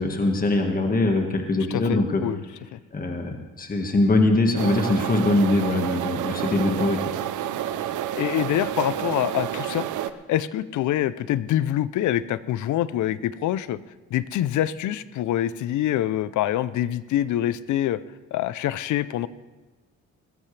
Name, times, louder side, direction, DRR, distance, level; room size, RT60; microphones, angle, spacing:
voice 1, 0.0-2.2 2.9-7.0, left 2 dB, 30° left, 3 dB, 1.6 m, -22 dB
voice 2, 1.7-2.4 2.7-2.8 8.2-9.9 10.3-13.8 14.1-18.0 18.3-19.3, left 12 dB, 75° left, 17 dB, 0.6 m, -25 dB
sound 1, 4.6-10.1, right 11 dB, 80° right, 0.7 m, -29 dB
20.5 x 13.5 x 3.3 m, 1.2 s
cardioid pair, 90°, 30 cm